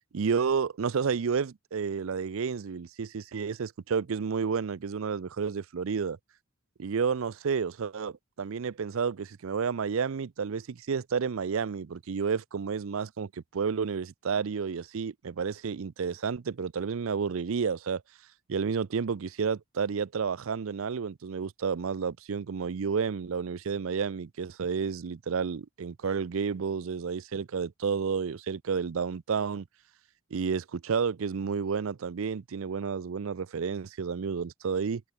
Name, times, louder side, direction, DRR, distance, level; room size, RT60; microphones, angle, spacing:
voice 1, 0.1-6.2 6.8-18.0 18.5-29.7 30.3-35.0, right 6 dB, 70° right, 0.5 m, -31 dB
open air
head